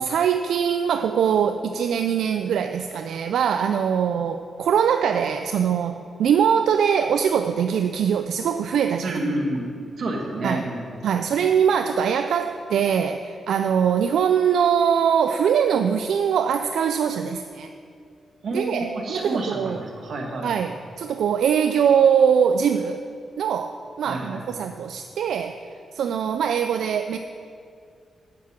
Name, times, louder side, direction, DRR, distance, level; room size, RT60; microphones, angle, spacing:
voice 1, 0.0-9.2 10.4-10.7 11.0-17.7 18.5-19.8 20.4-23.0 23.4-25.6 25.9-27.2, right 7 dB, 85° right, 8 dB, 0.4 m, -22 dB
voice 2, 9.0-9.7 10.0-10.9 18.4-20.6 24.0-24.6, right 2 dB, 65° right, 1 dB, 1.9 m, -29 dB
9.4 x 7.4 x 7.5 m, 2.4 s
cardioid pair, 105°, 0 cm